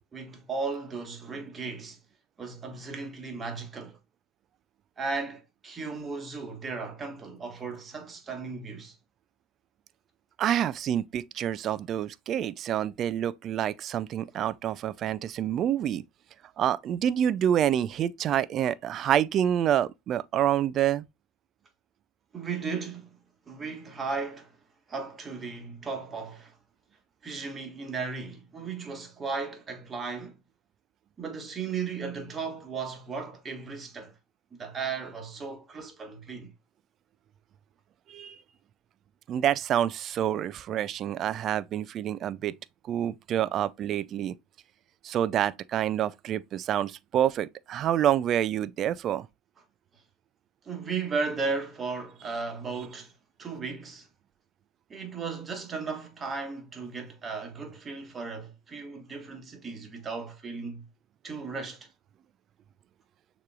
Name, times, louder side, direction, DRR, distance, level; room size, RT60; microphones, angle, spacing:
voice 1, 0.1-2.0 2.4-4.0 5.0-9.0 22.3-23.2 23.5-24.5 24.9-26.6 27.2-30.4 31.2-34.1 34.6-36.5 50.6-53.1 53.4-54.1 54.9-60.8 61.2-61.9, right 4 dB, 30° right, 1.6 m, -35 dB
voice 2, 10.4-16.0 16.6-21.0 38.1-38.4 39.3-42.5 42.9-44.4 45.0-49.3, right 10 dB, 45° right, 0.3 m, -27 dB
6.6 x 3.0 x 2.2 m
hypercardioid pair, 80°, 0 cm